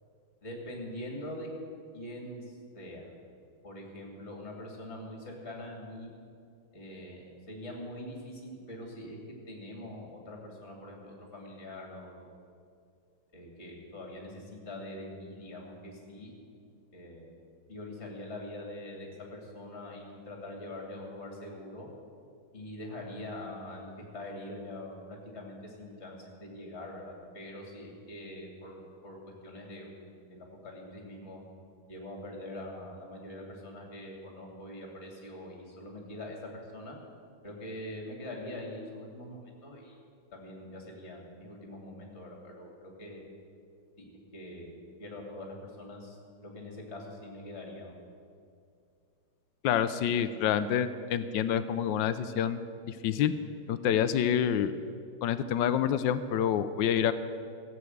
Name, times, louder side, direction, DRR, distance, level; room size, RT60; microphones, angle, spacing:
voice 1, 0.4-1.5 1.9-3.1 3.6-6.1 6.7-9.2 9.5-12.3 13.3-16.3 16.9-17.3 17.7-21.9 22.5-29.9 30.3-31.4 31.9-37.0 37.4-40.0 40.3-43.2 44.0-48.0, left 1 dB, 35° left, 0 dB, 2.8 m, -43 dB
voice 2, 49.6-52.6 52.9-53.3 53.7-54.7 55.2-57.1, left 9 dB, 80° left, 12 dB, 1.3 m, -27 dB
15.0 x 8.1 x 7.9 m, 2.4 s
omnidirectional pair, 2.0 m